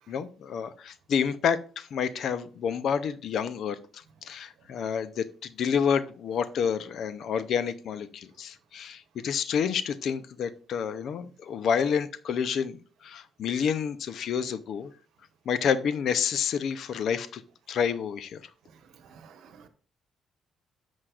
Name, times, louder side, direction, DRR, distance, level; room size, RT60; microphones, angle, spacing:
voice 1, 0.1-3.8 4.2-14.9 15.5-17.4 17.7-18.4, left 7 dB, 65° left, 15 dB, 0.6 m, -29 dB
voice 2, 18.7-19.7, right 6 dB, 80° right, 9 dB, 1.0 m, -53 dB
9.9 x 6.4 x 2.4 m, 0.41 s
cardioid pair, 90°, 0 cm